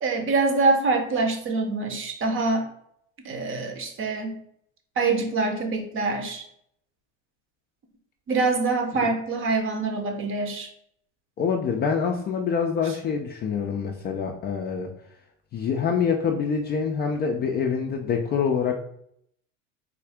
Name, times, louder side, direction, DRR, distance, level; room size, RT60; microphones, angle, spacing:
voice 1, 0.0-2.7 3.2-4.4 5.0-6.5 8.3-10.7 12.8-12.9, right 3 dB, 35° right, 5 dB, 0.7 m, -25 dB
voice 2, 11.4-14.9 15.5-18.7, left 6 dB, 25° left, 2 dB, 0.3 m, -26 dB
3.7 x 2.3 x 3.4 m, 0.70 s
hypercardioid pair, 95°, 39 cm